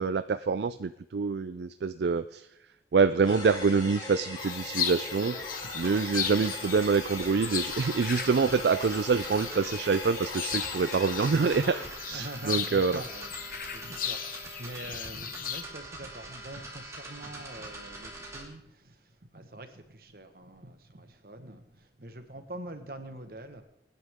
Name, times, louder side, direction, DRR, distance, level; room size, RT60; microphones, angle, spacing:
voice 1, 0.0-2.5 2.9-5.4 5.8-13.0, right 5 dB, 70° right, 0.4 m, -26 dB
sound 1, 3.2-11.9, left 2 dB, 25° left, 4.0 m, -40 dB
sound 2, 4.4-15.6, left 9 dB, 50° left, 0.9 m, -37 dB
sound 3, 5.8-18.4, right 2 dB, 15° right, 2.4 m, -44 dB
voice 2, 12.1-23.6, right 1 dB, 55° right, 1.4 m, -45 dB
25.5 x 10.0 x 3.6 m
head